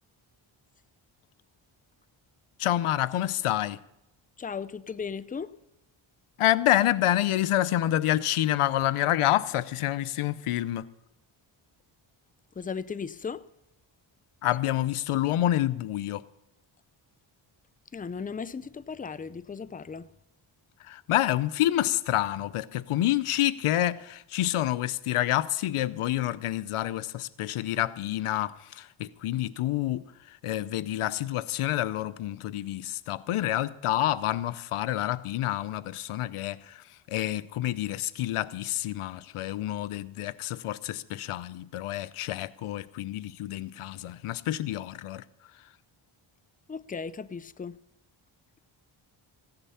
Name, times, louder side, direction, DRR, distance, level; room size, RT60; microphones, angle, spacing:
voice 1, 2.6-3.8 6.4-10.9 14.4-16.2 20.8-45.2, left 13 dB, 85° left, 0.7 m, -28 dB
voice 2, 4.4-5.5 12.6-13.4 17.9-20.1 46.7-47.8, left 5 dB, 15° left, 0.5 m, -36 dB
15.5 x 10.5 x 5.7 m
cardioid pair, 70°, 50 cm